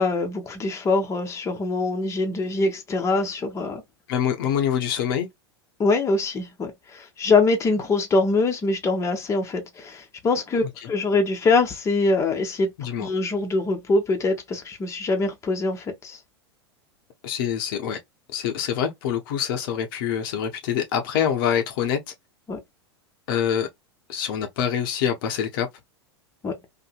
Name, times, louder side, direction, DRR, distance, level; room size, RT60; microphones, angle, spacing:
voice 1, 0.0-3.8 5.8-16.2 22.5-22.6 26.4-26.6, left 3 dB, 20° left, 0.8 m, -24 dB
voice 2, 4.1-5.3 10.8-10.9 12.8-13.1 17.2-18.0 18.3-22.0 23.3-23.7 24.1-25.7, left 9 dB, 50° left, 0.7 m, -25 dB
2.7 x 2.6 x 2.4 m
figure-of-eight pair, 90°, 14 cm